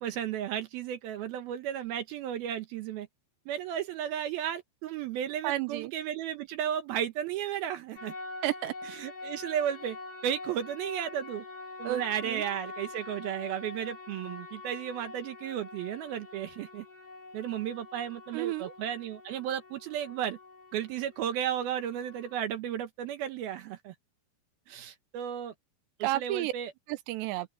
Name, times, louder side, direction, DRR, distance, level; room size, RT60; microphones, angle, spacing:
voice 1, 0.0-3.1 3.5-8.1 8.8-10.0 10.2-11.4 11.8-16.9 17.3-20.4 20.7-23.9 24.7-25.5 26.0-26.7, right 10 dB, 70° right, 2.6 m, -34 dB
voice 2, 5.4-5.9 8.4-8.7 11.8-12.4 18.3-18.7 26.0-26.5 26.9-27.5, right 16 dB, 90° right, 3.0 m, -31 dB
sound 1, 8.0-22.4, left 3 dB, 40° left, 7.7 m, -45 dB
open air
omnidirectional pair, 5.0 m